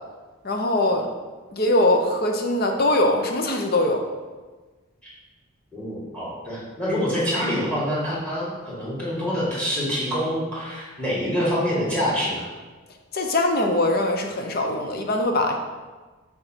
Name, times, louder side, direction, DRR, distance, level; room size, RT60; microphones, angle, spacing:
voice 1, 0.4-1.1 1.5-4.0 13.1-15.6, left 1 dB, 45° left, 3 dB, 0.8 m, -22 dB
voice 2, 5.7-12.4, equal, 5° left, -6 dB, 2.2 m, -26 dB
6.6 x 3.7 x 6.1 m, 1.3 s
head